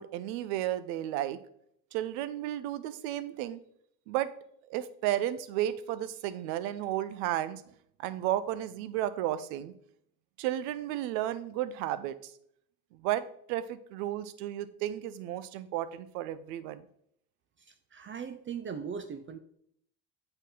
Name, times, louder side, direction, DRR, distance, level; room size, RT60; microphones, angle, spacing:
voice 1, 0.0-1.4 1.9-3.6 4.1-4.3 4.7-7.6 8.0-9.7 10.4-12.1 12.9-13.2 13.5-16.8, right 13 dB, 70° right, 14 dB, 0.7 m, -33 dB
voice 2, 17.6-19.4, right 6 dB, 25° right, 10 dB, 0.5 m, -39 dB
8.0 x 3.9 x 3.9 m, 0.70 s
hypercardioid pair, 65°, 47 cm